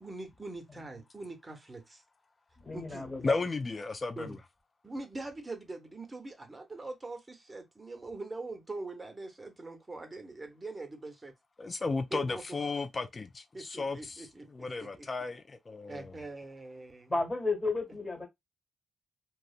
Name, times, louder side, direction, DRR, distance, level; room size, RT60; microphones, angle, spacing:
voice 1, 0.0-2.0 2.7-3.0 4.2-4.4 4.8-11.3 12.1-12.4 13.5-15.1 15.9-17.1, right 2 dB, 30° right, 0.8 m, -43 dB
voice 2, 2.6-3.4 17.1-18.3, left 3 dB, 20° left, 1.3 m, -33 dB
voice 3, 3.2-4.4 11.6-16.1, left 3 dB, 40° left, 0.3 m, -34 dB
2.6 x 2.1 x 2.4 m
supercardioid pair, 55°, 0 cm